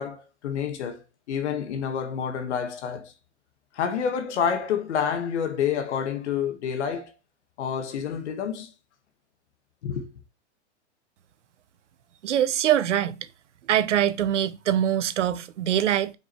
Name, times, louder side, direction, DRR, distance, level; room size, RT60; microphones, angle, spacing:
voice 1, 0.0-3.1 3.7-7.1 7.6-8.7 9.8-10.1, left 7 dB, 70° left, 1.5 m, -28 dB
voice 2, 12.2-13.2 13.7-16.1, right 10 dB, 85° right, 0.9 m, -23 dB
5.1 x 4.8 x 4.4 m
hypercardioid pair, 140°, 35 cm